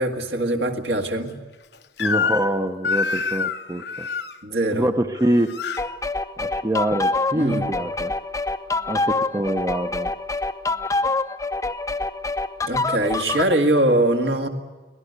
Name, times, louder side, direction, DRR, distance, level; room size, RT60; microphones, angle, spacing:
voice 1, 0.0-1.4 4.4-4.9 7.3-7.7 12.6-14.5, right 1 dB, 70° right, 3 dB, 2.0 m, -22 dB
Crying sobbing / Screech, 2.0-2.6 2.8-4.3 5.2-5.8, left 5 dB, 70° left, 0.9 m, -26 dB
voice 2, 2.0-4.1 4.7-5.5 6.4-8.1 8.9-10.1, right 1 dB, 20° right, 7 dB, 0.7 m, -25 dB
sound 1, 5.8-13.5, left 3 dB, 20° left, 0.6 m, -26 dB
24.5 x 18.0 x 8.1 m, 1.2 s
head